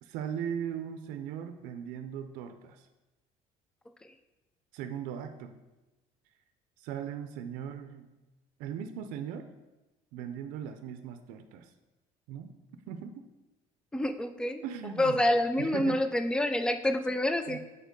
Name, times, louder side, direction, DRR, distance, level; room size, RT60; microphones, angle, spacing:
voice 1, 0.0-2.9 4.7-5.5 6.8-8.1 8.6-9.5 10.1-11.7 12.3-12.5 12.9-13.3 14.6-15.2 15.6-16.0 17.5-17.6, right 8 dB, 85° right, 8 dB, 0.5 m, -38 dB
voice 2, 13.9-14.6 15.0-17.6, left 1 dB, 5° left, 9 dB, 0.3 m, -28 dB
5.1 x 4.1 x 5.1 m, 1.1 s
cardioid pair, 140°, 14 cm